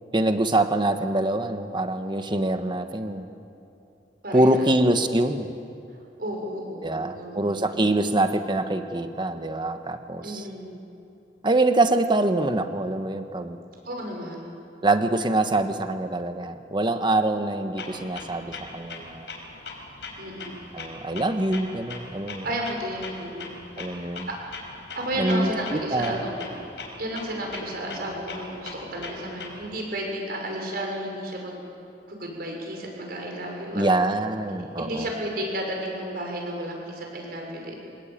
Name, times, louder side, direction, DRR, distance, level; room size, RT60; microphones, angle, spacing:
voice 1, 0.1-3.2 4.3-5.5 6.8-10.4 11.4-13.6 14.8-19.3 20.7-22.4 23.8-24.3 25.2-26.2 33.7-35.1, right 2 dB, 25° right, 8 dB, 1.3 m, -24 dB
voice 2, 4.2-4.7 6.2-7.8 10.2-10.8 13.8-14.6 20.2-20.8 22.4-24.4 24.9-26.5 27.0-31.6 32.1-33.8 34.8-37.9, right 1 dB, 60° right, 0 dB, 6.4 m, -33 dB
Clock, 17.8-29.8, left 3 dB, 90° left, 4.8 m, -41 dB
26.0 x 20.5 x 9.1 m, 2.7 s
head